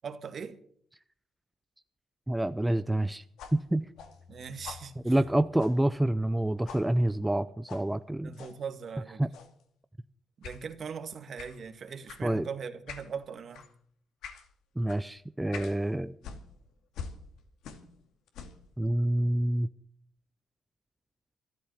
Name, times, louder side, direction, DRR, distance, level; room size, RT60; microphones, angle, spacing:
voice 1, 0.0-0.6 4.3-5.2 8.2-9.2 10.4-13.7, right 6 dB, 50° right, 1.7 m, -40 dB
voice 2, 2.3-3.2 3.5-3.9 5.0-8.3 9.2-9.3 12.2-12.5 14.8-16.2 18.8-19.7, right 1 dB, 10° right, 0.5 m, -27 dB
sound 1, 3.4-6.4 6.7-6.9 7.7-7.9 8.3-8.6 9.3-9.6 10.4-10.6 11.4-11.6 12.1-12.3 12.9-13.1 13.5-13.7 14.2-14.5 14.9-15.0 15.5-15.8 16.2-18.0 18.3-18.7, left 6 dB, 85° left, 2.3 m, -45 dB
13.5 x 12.5 x 7.2 m
cardioid pair, 100°, 0 cm